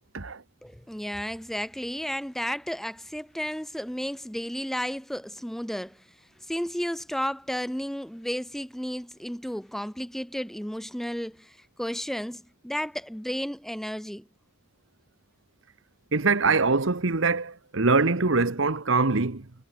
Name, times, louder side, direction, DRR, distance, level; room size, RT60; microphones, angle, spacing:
voice 1, 0.6-14.3, equal, ahead, 0.5 m, -33 dB
voice 2, 16.1-19.5, right 3 dB, 65° right, 1.3 m, -23 dB
head